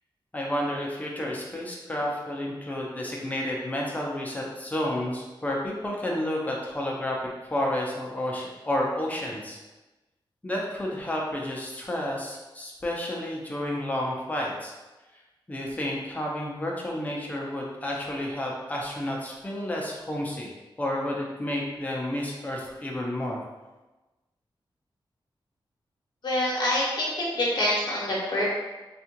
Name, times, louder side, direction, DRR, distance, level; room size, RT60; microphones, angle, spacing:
voice 1, 0.3-7.2 7.5-9.6 10.4-14.7 15.5-20.5 20.8-23.4, left 1 dB, 15° left, -2 dB, 0.6 m, -31 dB
voice 2, 26.2-28.4, left 1 dB, 55° left, -6 dB, 0.8 m, -26 dB
3.5 x 2.4 x 2.8 m, 1.1 s
wide cardioid pair, 170°, 9 cm